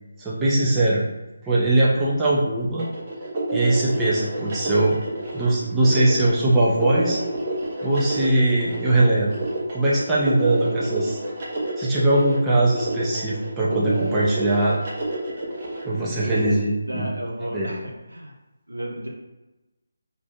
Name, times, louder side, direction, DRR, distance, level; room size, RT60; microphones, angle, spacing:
voice 1, 0.2-1.0 1.4-2.9 3.5-5.0 5.3-7.2 7.8-9.3 9.7-11.2 11.8-14.8 15.9-17.1 17.5-17.7, right 2 dB, 10° right, -7 dB, 0.5 m, -21 dB
sound 1, 2.8-16.5, right 2 dB, 35° right, 0.8 m, -29 dB
voice 2, 16.9-18.3 18.7-19.1, equal, 85° right, -2 dB, 0.9 m, -33 dB
2.6 x 2.5 x 3.4 m, 1.1 s
figure-of-eight pair, 155°, 0 cm